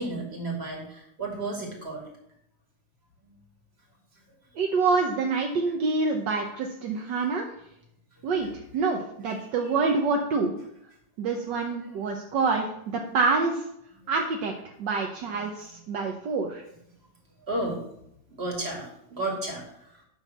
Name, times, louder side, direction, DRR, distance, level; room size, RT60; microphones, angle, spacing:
voice 1, 0.0-2.1 9.2-9.7 11.3-11.5 11.8-12.2 15.3-15.4 17.5-17.8 18.3-20.0, right 2 dB, 35° right, 0 dB, 2.5 m, -34 dB
voice 2, 4.5-7.4 8.2-8.5 8.7-10.5 11.2-13.6 14.1-14.5 14.8-16.6, right 4 dB, 70° right, 3 dB, 1.5 m, -26 dB
11.0 x 3.9 x 7.0 m, 0.77 s
omnidirectional pair, 2.0 m